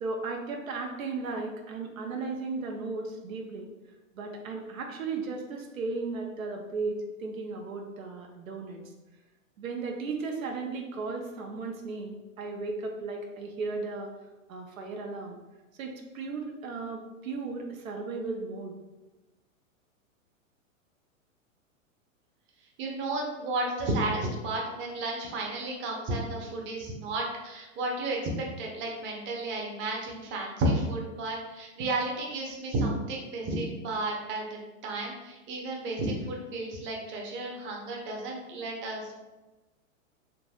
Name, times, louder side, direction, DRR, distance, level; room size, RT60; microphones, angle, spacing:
voice 1, 0.0-3.7 4.1-8.8 9.6-14.1 14.5-15.4 15.7-18.7, right 3 dB, 85° right, 2 dB, 0.7 m, -35 dB
voice 2, 22.8-28.2 28.6-34.5 34.8-39.2, right 2 dB, 30° right, -1 dB, 0.7 m, -32 dB
3.9 x 2.6 x 2.3 m, 1.1 s
hypercardioid pair, 110°, 40 cm